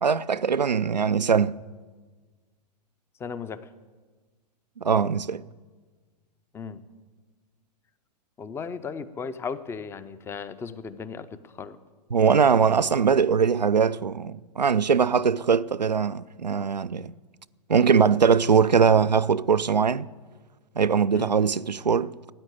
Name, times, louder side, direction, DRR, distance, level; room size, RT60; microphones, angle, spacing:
voice 1, 0.0-1.6 4.8-5.4 12.1-17.1 17.7-20.1 20.8-22.3, right 6 dB, 85° right, 0.5 m, -21 dB
voice 2, 3.2-3.7 6.5-6.8 8.4-11.8 21.1-21.3, left 5 dB, 10° left, 0.6 m, -36 dB
13.0 x 9.6 x 9.5 m
figure-of-eight pair, 105°, 21 cm